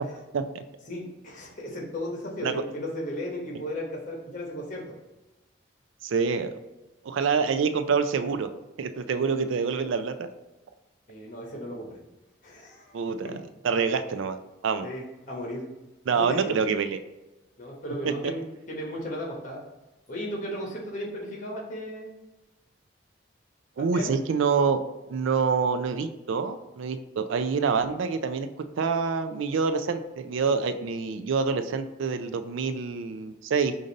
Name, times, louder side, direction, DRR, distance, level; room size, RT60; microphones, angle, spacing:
voice 1, 0.8-4.9 11.1-12.0 12.4-13.4 14.8-15.7 16.1-16.5 17.6-19.6 20.1-22.2 23.8-24.2, equal, 40° left, -2 dB, 1.2 m, -35 dB
voice 2, 6.0-6.5 7.0-8.5 8.8-10.3 12.9-13.3 13.6-14.4 14.6-14.9 16.1-17.0 23.8-24.8 25.1-28.5 28.8-33.8, right 5 dB, 75° right, 9 dB, 0.4 m, -26 dB
5.1 x 2.6 x 4.0 m, 1.1 s
head